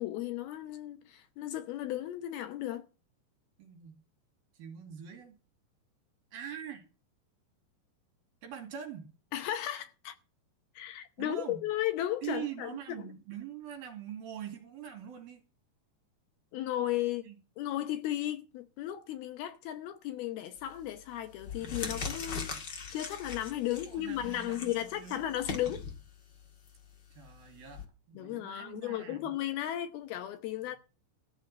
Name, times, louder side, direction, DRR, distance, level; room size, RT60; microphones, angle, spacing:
voice 1, 0.0-2.9 9.3-10.2 10.8-13.1 16.5-17.3 17.6-25.8 28.1-30.8, left 13 dB, 75° left, 2.5 m, -35 dB
voice 2, 3.6-4.0 4.6-5.4 6.3-6.9 8.4-9.1 11.2-11.6 12.2-15.4 17.2-17.4 22.3-22.6 23.7-25.2 27.2-29.3, right 9 dB, 60° right, 4.3 m, -43 dB
sound 1, 20.6-20.9 21.3-27.8, left 5 dB, 50° left, 1.3 m, -41 dB
14.0 x 6.4 x 8.3 m
omnidirectional pair, 4.9 m